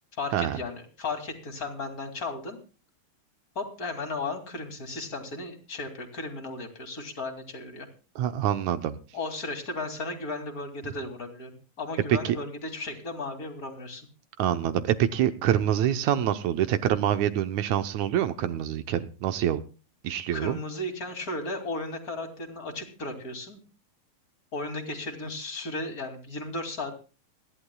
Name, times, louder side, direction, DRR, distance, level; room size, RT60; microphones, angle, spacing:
voice 1, 0.2-2.6 3.5-7.9 9.1-11.5 11.8-14.1 20.3-23.6 24.5-27.1, left 2 dB, 30° left, 2.5 m, -35 dB
voice 2, 8.2-9.0 12.2-12.4 14.4-19.6 20.0-20.6, right 11 dB, 75° right, 1.8 m, -26 dB
28.0 x 11.0 x 2.3 m
omnidirectional pair, 3.9 m